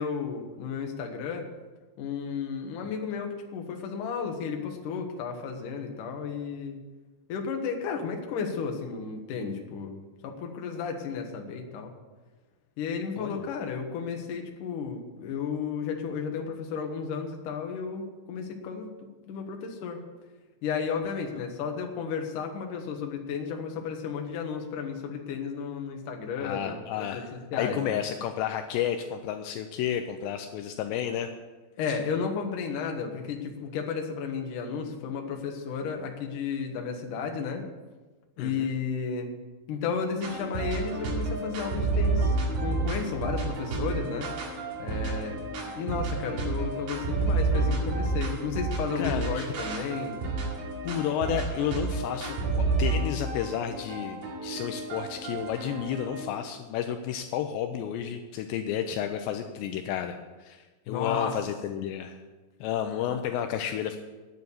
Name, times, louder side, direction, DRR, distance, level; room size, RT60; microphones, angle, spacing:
voice 1, 0.0-1.4 2.0-6.8 7.3-11.9 12.8-18.9 19.3-20.0 20.6-27.2 27.5-28.0 31.8-37.6 38.4-39.3 39.7-44.3 44.8-45.5 45.8-50.2 60.9-61.4, left 6 dB, 60° left, 3 dB, 2.4 m, -33 dB
voice 2, 13.2-13.5 26.4-31.3 31.9-32.0 38.4-38.7 49.0-49.5 50.8-62.2 62.6-64.0, left 9 dB, 80° left, 6 dB, 2.7 m, -32 dB
sound 1, 40.2-56.2, right 3 dB, 75° right, 4.3 m, -30 dB
9.5 x 9.2 x 8.5 m, 1.3 s
omnidirectional pair, 5.3 m